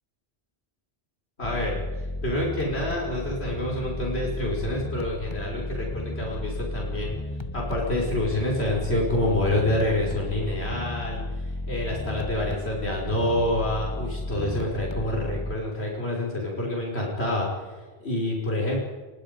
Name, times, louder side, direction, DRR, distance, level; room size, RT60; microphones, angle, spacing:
voice 1, 1.4-1.8 2.2-7.1 7.5-18.8, left 1 dB, 85° left, -3 dB, 5.6 m, -27 dB
sound 1, 1.4-15.6, left 1 dB, 25° left, 1.4 m, -33 dB
28.5 x 23.5 x 5.3 m, 1.4 s
omnidirectional pair, 1.1 m